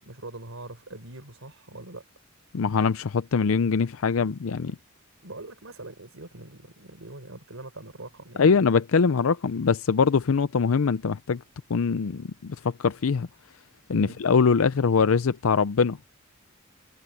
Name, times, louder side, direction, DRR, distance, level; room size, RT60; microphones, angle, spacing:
voice 1, 0.0-2.0 5.2-8.5 13.9-14.2, right 2 dB, 80° right, 4.1 m, -42 dB
voice 2, 2.5-4.8 8.4-11.4 11.7-13.3 13.9-16.0, left 5 dB, 85° left, 0.5 m, -23 dB
head